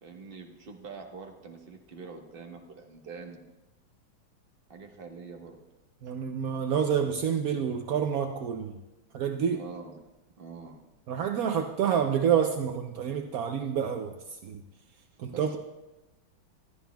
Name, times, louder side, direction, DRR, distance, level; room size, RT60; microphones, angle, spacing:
voice 1, 0.0-3.5 4.7-5.6 9.5-10.0 10.4-10.8 15.2-15.6, right 5 dB, 35° right, 2 dB, 1.2 m, -45 dB
voice 2, 6.0-8.8 9.1-9.6 11.1-14.2 14.4-14.6 15.2-15.6, right 8 dB, 75° right, 5 dB, 0.8 m, -28 dB
21.5 x 13.0 x 2.3 m, 1.0 s
omnidirectional pair, 2.2 m